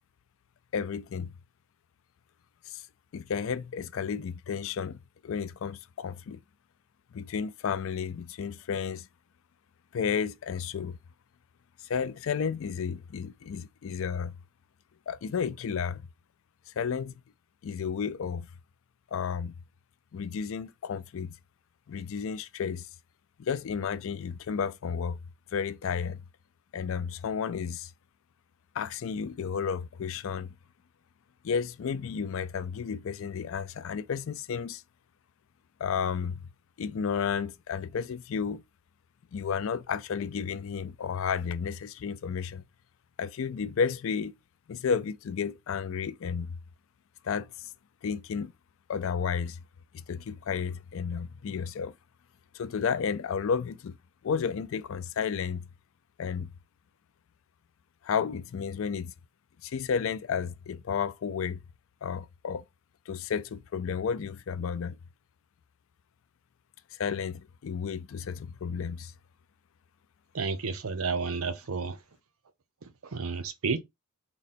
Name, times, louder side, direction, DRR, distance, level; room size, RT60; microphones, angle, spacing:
voice 1, 0.7-1.3 2.7-2.9 3.1-6.4 7.1-9.1 9.9-11.0 11.8-14.3 15.1-16.0 16.7-17.2 17.6-18.5 19.1-19.5 20.1-21.4 21.9-22.9 23.4-25.2 25.5-26.2 26.7-27.9 28.7-30.5 31.4-34.8 35.8-36.5 36.8-38.6 39.3-42.6 43.2-44.4 44.7-46.6 47.2-47.7 48.0-48.5 48.9-49.6 50.1-51.9 52.5-54.0 54.2-55.7 56.2-56.5 58.0-59.1 59.6-61.6 62.0-62.6 63.1-65.0 66.9-69.1, left 6 dB, 65° left, 0.4 m, -32 dB
voice 2, 70.3-72.0 72.8-73.8, right 4 dB, 80° right, 0.6 m, -31 dB
3.8 x 2.2 x 4.1 m
head